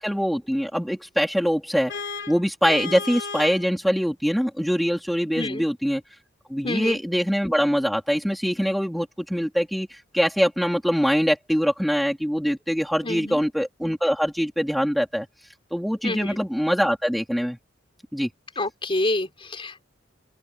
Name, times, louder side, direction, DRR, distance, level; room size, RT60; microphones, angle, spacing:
voice 1, 0.0-1.9 2.3-6.0 6.5-15.3 15.7-17.6 18.1-18.3, equal, ahead, 1.7 m, -23 dB
Vehicle horn car horn honking, 1.9-3.7, left 5 dB, 60° left, 2.8 m, -33 dB
voice 2, 5.3-5.7 6.6-7.0 13.0-13.4 16.0-16.4 18.6-19.8, left 2 dB, 30° left, 4.1 m, -28 dB
open air
head